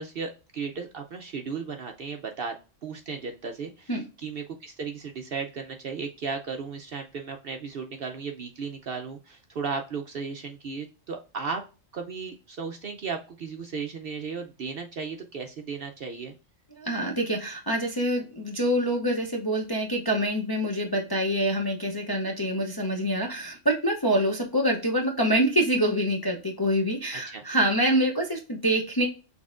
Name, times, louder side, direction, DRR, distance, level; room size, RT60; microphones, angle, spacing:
voice 1, 0.0-2.6 2.8-11.6 11.9-16.3 27.1-27.4, right 5 dB, 60° right, 4 dB, 0.7 m, -35 dB
voice 2, 16.8-29.1, right 1 dB, 25° left, 0 dB, 0.6 m, -26 dB
6.2 x 3.4 x 2.4 m, 0.31 s
omnidirectional pair, 1.4 m